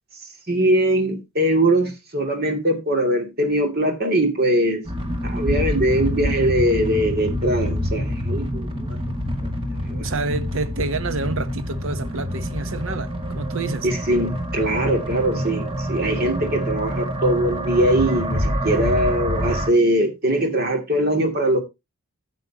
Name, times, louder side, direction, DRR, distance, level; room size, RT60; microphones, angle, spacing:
voice 1, 0.5-4.8 5.2-8.7 9.4-9.5 9.9-10.1 13.8-21.6, right 1 dB, 45° right, 2.4 m, -21 dB
sound 1, 4.8-19.7, equal, 25° right, 2.0 m, -26 dB
voice 2, 10.0-13.9, right 3 dB, 65° right, 0.9 m, -28 dB
13.0 x 8.2 x 2.9 m
head